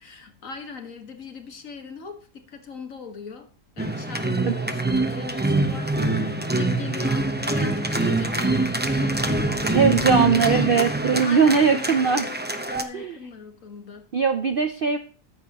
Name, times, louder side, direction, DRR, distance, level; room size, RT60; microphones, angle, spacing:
voice 1, 0.0-3.5 3.8-14.1, left 5 dB, 55° left, 1.9 m, -39 dB
sound 1, 3.8-12.8, right 2 dB, 10° right, 0.7 m, -24 dB
voice 2, 9.7-12.2 12.9-13.1 14.1-15.0, right 6 dB, 55° right, 0.6 m, -20 dB
14.0 x 10.0 x 2.9 m
omnidirectional pair, 1.7 m